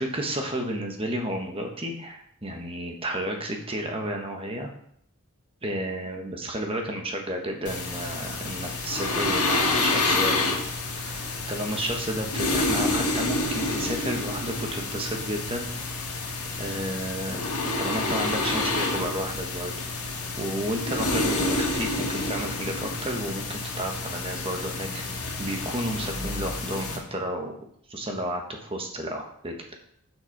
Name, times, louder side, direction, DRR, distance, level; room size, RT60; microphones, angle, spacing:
voice 1, 0.0-4.7 5.6-10.6 11.0-15.7 16.2-17.4 17.8-19.7 20.4-27.5 27.9-29.7, right 1 dB, 25° right, 3 dB, 1.3 m, -32 dB
sound 1, 7.7-27.0, left 2 dB, 85° left, 2.0 m, -28 dB
9.3 x 6.2 x 4.1 m, 0.67 s
head